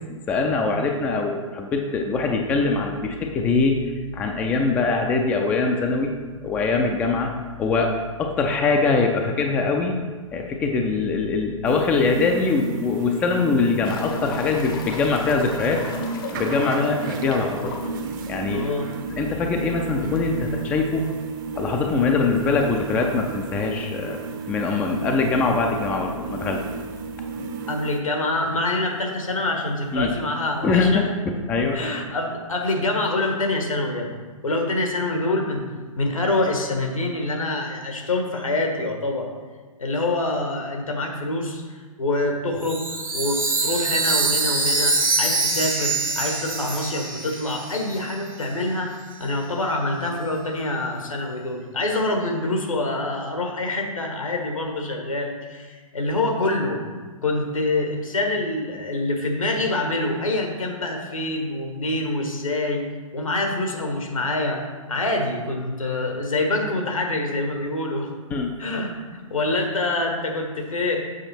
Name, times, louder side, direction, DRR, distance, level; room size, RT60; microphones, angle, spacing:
voice 1, 0.1-3.8 4.1-6.1 6.4-7.3 7.6-9.9 10.3-15.8 16.3-17.8 18.3-18.7 19.2-21.1 21.6-24.2 24.5-26.6 29.9-30.1 30.6-31.8 68.3-68.5, left 4 dB, 10° left, 3 dB, 0.3 m, -23 dB
sound 1, 11.6-28.0, right 4 dB, 35° right, 0.7 m, -33 dB
sound 2, 13.8-19.2 19.5-19.6 20.0-20.1 22.8-22.9 24.6-24.7 25.5-25.6 25.8-25.9 26.8-26.9 27.1-27.7 28.7-28.8, left 5 dB, 40° left, 0.8 m, -38 dB
voice 2, 18.5-18.9 27.7-31.1 31.7-34.1 34.4-35.7 36.0-39.3 39.8-42.8 43.1-48.9 49.2-56.8 57.2-62.9 63.1-64.6 64.9-68.1 68.6-71.0, left 2 dB, 75° left, 2 dB, 1.4 m, -26 dB
Chime, 42.6-48.2, right 3 dB, 75° right, 1.4 m, -24 dB
7.1 x 5.0 x 4.3 m, 1.4 s
figure-of-eight pair, 115°, 18 cm